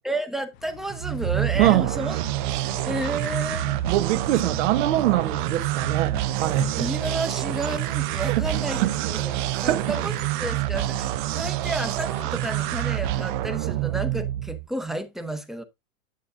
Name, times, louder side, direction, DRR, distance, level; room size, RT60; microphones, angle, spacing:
voice 1, 0.0-2.2 2.6-3.8 6.8-10.1 10.4-15.6, right 1 dB, ahead, 0.7 m, -32 dB
sound 1, 0.5-13.1, left 9 dB, 55° left, 0.8 m, -43 dB
sound 2, 0.9-14.7, right 16 dB, 40° right, 0.4 m, -27 dB
voice 2, 1.6-1.9 3.9-6.9 8.2-10.0, right 14 dB, 65° right, 1.0 m, -24 dB
9.7 x 8.4 x 2.5 m
supercardioid pair, 140°, 39 cm